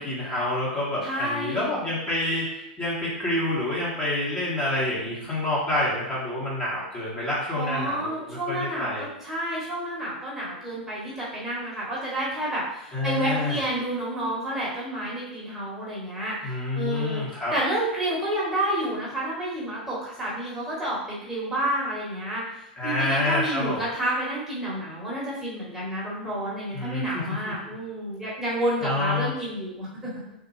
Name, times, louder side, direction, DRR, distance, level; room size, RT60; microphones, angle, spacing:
voice 1, 0.0-9.1 12.9-13.6 16.4-17.5 22.8-23.9 26.7-27.7 28.8-29.3, left 1 dB, 20° left, -7 dB, 1.2 m, -28 dB
voice 2, 1.0-1.7 7.5-17.2 17.5-30.1, right 1 dB, 5° right, -7 dB, 1.3 m, -30 dB
3.6 x 2.3 x 3.1 m, 0.81 s
figure-of-eight pair, 95°, 5 cm